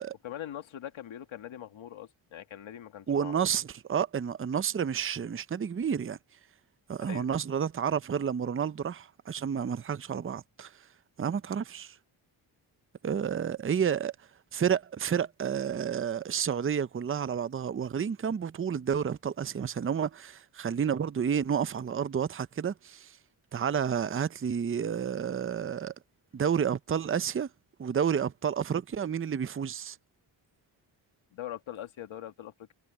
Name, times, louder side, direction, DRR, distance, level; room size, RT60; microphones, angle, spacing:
voice 1, 0.2-3.4 7.1-7.3 31.3-32.7, left 11 dB, 85° left, 1.9 m, -42 dB
voice 2, 3.1-6.2 6.9-10.7 11.2-12.0 13.0-14.1 14.5-23.2 23.5-25.9 26.3-27.5 27.8-30.0, right 7 dB, 30° right, 0.6 m, -30 dB
cardioid pair, 80°, 46 cm